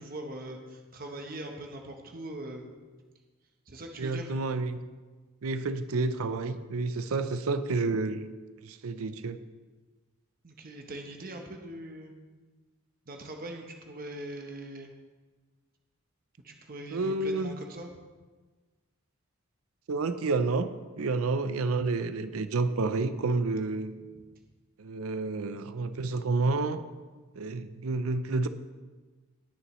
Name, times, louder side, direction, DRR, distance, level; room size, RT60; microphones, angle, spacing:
voice 1, 0.0-2.7 3.7-4.3 10.4-12.1 13.1-14.9 16.4-17.9 24.0-24.2, right 1 dB, 45° right, 3 dB, 0.9 m, -41 dB
voice 2, 4.0-4.8 5.4-8.2 8.6-9.4 16.9-17.6 19.9-20.7 21.0-23.9 24.8-26.8 27.3-28.5, right 3 dB, 85° right, 11 dB, 0.5 m, -29 dB
19.5 x 6.9 x 3.1 m, 1.3 s
head